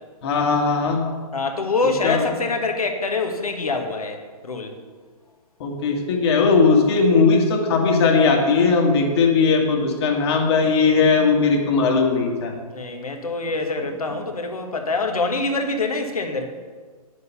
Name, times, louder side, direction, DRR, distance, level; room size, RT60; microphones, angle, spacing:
voice 1, 0.2-1.0 2.0-2.3 5.6-12.5, left 4 dB, 45° left, 2 dB, 1.9 m, -18 dB
voice 2, 1.3-4.8 12.7-16.5, left 3 dB, 70° left, 4 dB, 1.5 m, -25 dB
9.5 x 6.8 x 5.6 m, 1.5 s
figure-of-eight pair, 120°, 19 cm